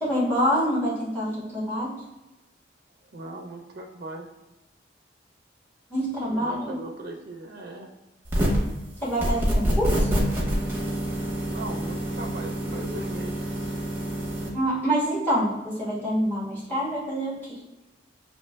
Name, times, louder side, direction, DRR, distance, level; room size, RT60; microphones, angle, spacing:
voice 1, 0.0-1.9 5.9-6.7 9.0-10.3 14.5-17.6, equal, 10° left, -9 dB, 1.3 m, -26 dB
voice 2, 3.1-4.3 6.3-7.9 11.5-13.4, right 2 dB, 55° right, 2 dB, 0.4 m, -38 dB
sound 1, 8.3-8.7 9.2-14.5, right 1 dB, 10° right, 0.9 m, -27 dB
6.4 x 2.8 x 2.2 m, 1.0 s
head